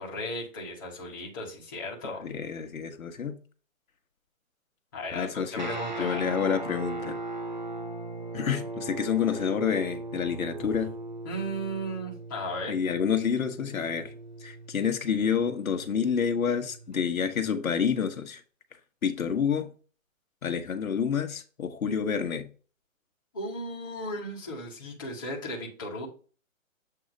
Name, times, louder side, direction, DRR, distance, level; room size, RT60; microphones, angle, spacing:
voice 1, 0.0-2.2 4.9-6.3 11.2-12.8 23.3-26.1, equal, 15° left, 1.0 m, -36 dB
voice 2, 2.2-3.4 5.1-5.7 6.0-7.2 8.3-10.9 12.7-14.1 14.4-18.4 19.0-19.7 20.4-22.5, left 7 dB, 85° left, 1.1 m, -28 dB
Guitar, 5.5-17.0, right 2 dB, 35° right, 0.4 m, -39 dB
7.7 x 2.8 x 5.1 m
hypercardioid pair, 180°, 41 cm